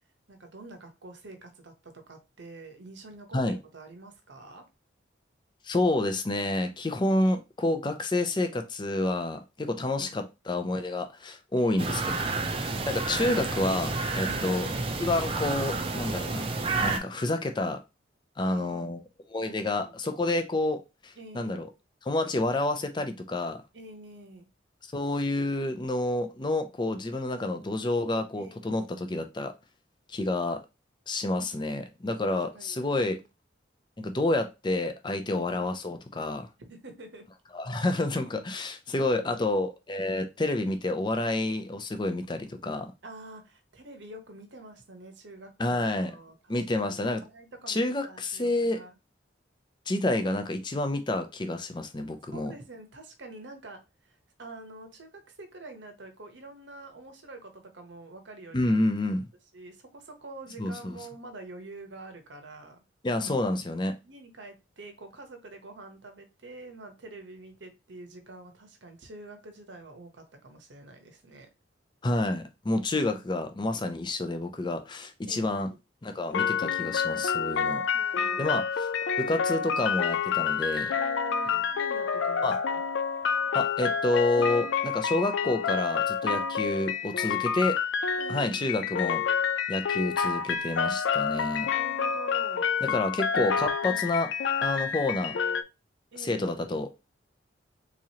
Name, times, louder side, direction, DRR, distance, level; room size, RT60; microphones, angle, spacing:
voice 1, 0.3-4.7 11.6-12.5 14.2-14.8 18.4-18.9 19.4-20.0 21.2-21.7 23.7-24.5 28.3-29.1 32.5-33.2 36.6-37.3 38.9-39.6 43.0-49.0 52.3-58.8 59.5-62.8 64.0-71.5 73.1-73.4 75.3-75.8 77.9-78.4 80.9-82.9 87.2-87.6 88.2-88.9 90.8-90.9 91.7-92.7 93.8-94.0 96.1-96.7, right 2 dB, 75° right, 0.9 m, -47 dB
voice 2, 5.6-12.1 12.6-14.7 15.0-16.5 16.8-17.8 18.4-19.0 19.3-21.7 22.1-23.6 24.9-29.5 30.1-30.6 31.1-33.2 34.0-36.5 37.5-42.9 45.6-46.1 46.5-47.2 47.7-48.8 49.9-52.5 58.5-59.3 60.6-61.0 63.0-64.0 72.0-75.7 76.0-77.8 78.4-78.6 79.2-80.9 82.4-82.6 83.5-87.7 88.3-89.2 89.7-91.7 92.8-94.3 94.6-95.4 96.2-96.9, left 2 dB, 25° left, 0.5 m, -29 dB
sound 1, 11.8-17.0, right 3 dB, 30° right, 0.5 m, -30 dB
sound 2, 76.3-95.6, left 6 dB, 80° left, 0.4 m, -28 dB
3.7 x 3.1 x 2.8 m
head